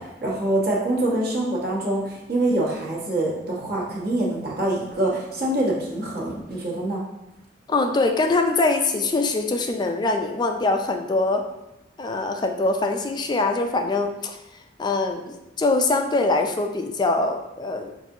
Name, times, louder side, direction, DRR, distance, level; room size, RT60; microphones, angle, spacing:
voice 1, 0.0-7.0, right 1 dB, 55° right, -4 dB, 1.0 m, -25 dB
voice 2, 7.7-11.4 12.0-14.4 14.8-17.9, left 3 dB, 25° left, 4 dB, 0.3 m, -23 dB
5.7 x 2.6 x 2.6 m, 0.90 s
head